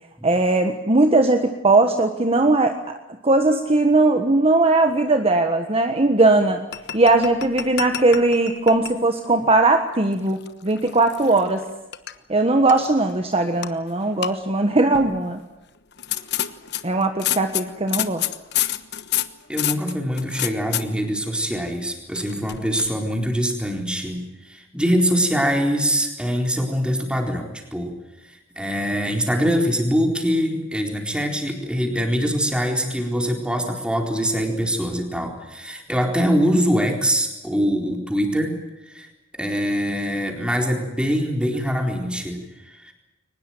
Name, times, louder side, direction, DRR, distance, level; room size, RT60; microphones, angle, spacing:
voice 1, 0.2-2.8 3.2-6.6 6.9-11.6 12.3-15.4 16.8-18.2, right 2 dB, 30° right, 6 dB, 1.4 m, -19 dB
sound 1, 6.7-9.0 9.3-9.5 10.1-11.6 11.9-12.1 12.7-13.1 13.6-13.7 14.0-14.3 14.9-15.3 15.9-20.8 22.2-22.9, left 12 dB, 60° left, 1.2 m, -28 dB
voice 2, 19.5-27.9 28.2-38.6 38.9-42.9, equal, 5° right, 2 dB, 4.1 m, -23 dB
23.0 x 20.0 x 9.2 m, 0.99 s
head